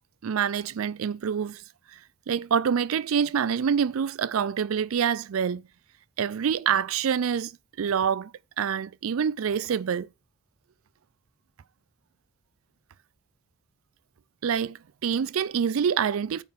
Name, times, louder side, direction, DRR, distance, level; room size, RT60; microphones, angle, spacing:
voice 1, 0.2-1.6 1.9-2.0 2.3-5.7 6.2-7.5 7.8-10.1 14.4-16.4, right 7 dB, 85° right, 0.4 m, -26 dB
8.9 x 3.8 x 5.8 m
head